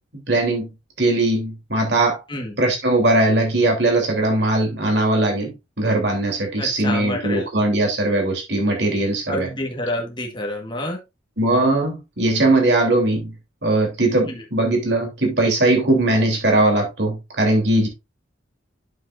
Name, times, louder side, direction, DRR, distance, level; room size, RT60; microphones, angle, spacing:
voice 1, 0.3-0.7 1.0-2.2 2.6-9.5 11.4-13.3 13.6-17.9, right 2 dB, 60° right, 1 dB, 3.2 m, -20 dB
voice 2, 6.6-7.5 9.3-11.0 14.3-14.4, left 1 dB, 25° left, 2 dB, 1.4 m, -28 dB
8.8 x 7.2 x 2.5 m, 0.24 s
head